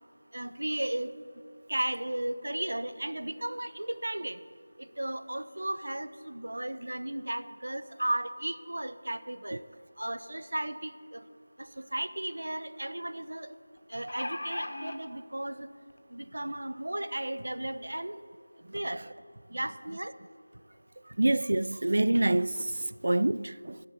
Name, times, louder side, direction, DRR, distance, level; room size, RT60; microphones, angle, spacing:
voice 1, 0.3-1.1 1.7-4.4 5.0-9.6 10.0-11.2 11.9-13.5 13.9-15.7 16.1-18.2 18.7-19.0 19.5-20.1, right 1 dB, 80° right, 0.9 m, -35 dB
sound 1, 11.7-11.8 12.1-12.2 13.8-15.0 15.9-16.0 16.4-16.5, left 1 dB, 50° left, 1.1 m, -37 dB
voice 2, 21.2-23.8, right 2 dB, 50° right, 0.3 m, -26 dB
11.5 x 7.4 x 7.8 m
figure-of-eight pair, 180°, 0 cm